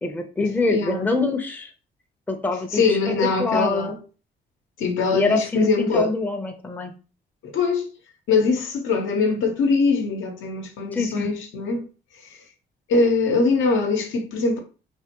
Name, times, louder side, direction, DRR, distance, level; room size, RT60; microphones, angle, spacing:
voice 1, 0.0-1.7 2.3-3.9 5.1-6.9 10.9-11.3, left 3 dB, 10° left, 0.5 m, -25 dB
voice 2, 0.7-1.0 2.7-4.0 4.8-6.1 7.4-7.9 8.3-11.8 12.9-14.6, left 4 dB, 75° left, 0.8 m, -22 dB
3.3 x 2.2 x 2.9 m
cardioid pair, 90°, 20 cm